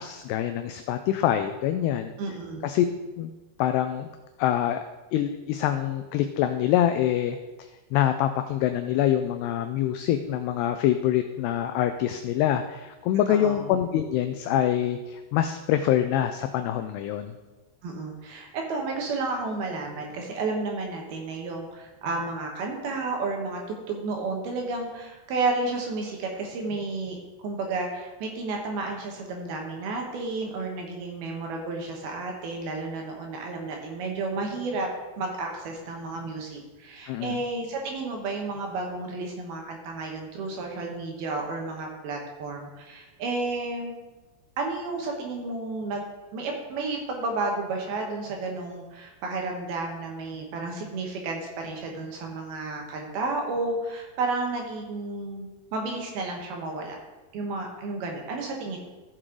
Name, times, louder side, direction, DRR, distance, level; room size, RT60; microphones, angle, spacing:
voice 1, 0.0-2.1 2.6-2.9 3.2-3.3 3.6-4.1 4.4-4.8 5.1-17.3 37.1-37.4, left 11 dB, 90° left, 8 dB, 2.3 m, -25 dB
voice 2, 2.2-2.7 13.4-13.7 17.8-27.2 27.4-34.9 35.2-43.9 44.6-46.0 46.3-57.0 57.3-58.8, right 3 dB, 70° right, 1 dB, 2.7 m, -32 dB
15.0 x 6.3 x 3.8 m, 1.2 s
omnidirectional pair, 5.3 m